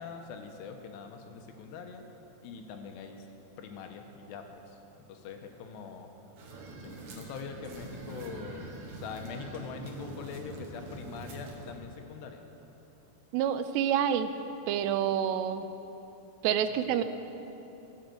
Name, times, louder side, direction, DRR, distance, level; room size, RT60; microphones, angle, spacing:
voice 1, 0.0-2.0 2.4-3.2 3.6-6.1 6.8-8.7 9.0-12.4 16.7-16.8, left 6 dB, 80° left, 4 dB, 3.0 m, -43 dB
sound 1, 6.4-11.8, right 2 dB, 60° right, 2.2 m, -44 dB
voice 2, 13.3-14.3 14.7-15.7 16.4-17.0, right 9 dB, 85° right, 10 dB, 2.7 m, -27 dB
17.0 x 8.0 x 7.7 m, 3.0 s
omnidirectional pair, 4.9 m